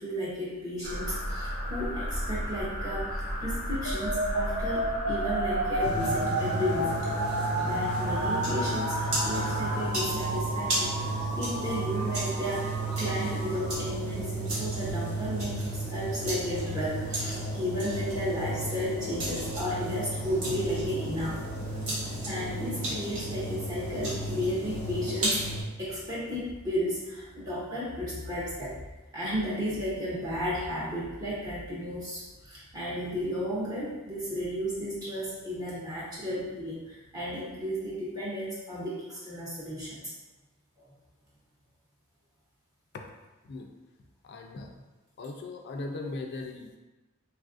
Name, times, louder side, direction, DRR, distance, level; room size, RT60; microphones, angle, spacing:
voice 1, 0.0-7.1 7.4-12.7 13.0-25.4 25.8-28.8 29.1-40.1 40.8-40.9, equal, 20° right, -8 dB, 0.6 m, -34 dB
sound 1, 0.8-9.8, equal, 35° right, 1.0 m, -35 dB
sound 2, 3.9-13.9, right 1 dB, 65° right, 0.5 m, -32 dB
sound 3, 5.8-25.6, right 1 dB, 80° right, 1.1 m, -33 dB
voice 2, 44.2-44.8 45.2-46.8, left 2 dB, 55° left, 3 dB, 0.3 m, -38 dB
3.3 x 2.4 x 2.4 m, 1.1 s
head